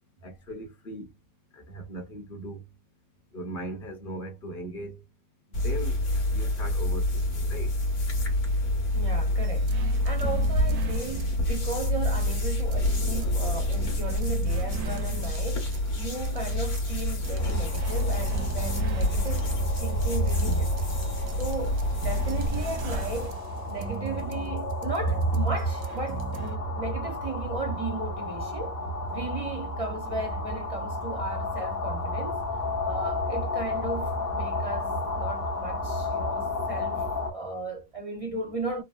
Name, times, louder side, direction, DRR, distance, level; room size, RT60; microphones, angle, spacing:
voice 1, 0.2-1.1 1.5-2.6 3.3-5.0 5.5-7.7, right 1 dB, 40° left, 1.0 m, -39 dB
sound 1, 5.5-23.3, left 1 dB, 60° left, 1.4 m, -27 dB
voice 2, 8.9-15.7 15.9-20.7 21.4-23.4 23.6-28.8 29.1-32.5 32.8-38.8, right 3 dB, 55° right, 0.4 m, -36 dB
sound 2, 9.4-26.6, right 5 dB, 90° right, 1.1 m, -41 dB
sound 3, 17.4-37.3, equal, 80° left, 1.4 m, -31 dB
3.6 x 2.0 x 2.3 m
omnidirectional pair, 1.5 m